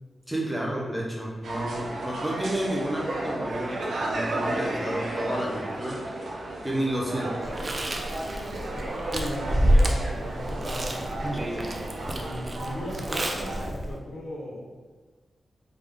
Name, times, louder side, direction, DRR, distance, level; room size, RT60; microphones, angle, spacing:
voice 1, 0.3-6.2 6.6-7.5, right 1 dB, ahead, -4 dB, 0.7 m, -31 dB
sound 1, 1.4-13.7, right 2 dB, 90° right, 0.6 m, -34 dB
Chewing mastication, 7.4-14.0, equal, 30° right, 0.3 m, -28 dB
voice 2, 9.1-11.5 12.2-14.7, left 1 dB, 65° left, -6 dB, 1.0 m, -36 dB
3.5 x 2.4 x 3.5 m, 1.3 s
wide cardioid pair, 150°, 0 cm